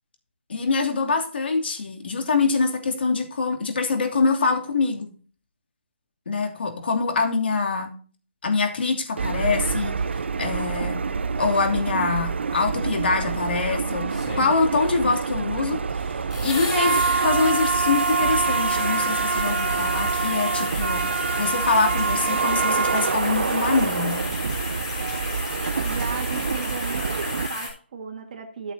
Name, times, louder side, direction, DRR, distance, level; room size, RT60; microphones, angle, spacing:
voice 1, 0.5-5.1 6.3-7.9 8.4-11.0 11.4-16.1 16.4-21.0 21.4-24.2, left 4 dB, 60° left, 3 dB, 2.8 m, -24 dB
sound 1, 9.2-27.5, right 5 dB, 70° right, 0.6 m, -26 dB
sound 2, 14.1-14.8 16.3-27.7, left 3 dB, 30° left, 4.3 m, -33 dB
voice 2, 25.8-28.7, right 6 dB, 40° right, 2 dB, 1.8 m, -35 dB
13.5 x 7.1 x 2.8 m, 0.40 s
hypercardioid pair, 160°, 6 cm